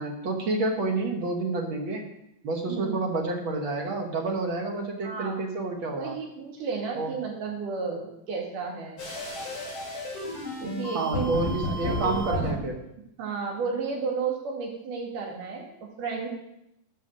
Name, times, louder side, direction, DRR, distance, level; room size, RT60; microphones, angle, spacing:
voice 1, 0.0-2.0 2.4-6.1 6.9-7.1 10.9-12.7, right 2 dB, 55° right, 2 dB, 1.4 m, -29 dB
voice 2, 2.7-3.0 5.0-5.4 5.8-9.0 10.6-11.3 11.8-12.5 13.2-16.3, right 5 dB, 75° right, 0 dB, 3.5 m, -32 dB
sound 1, 9.0-12.5, equal, 40° left, 4.2 m, -32 dB
12.0 x 5.8 x 6.3 m, 0.82 s
omnidirectional pair, 3.8 m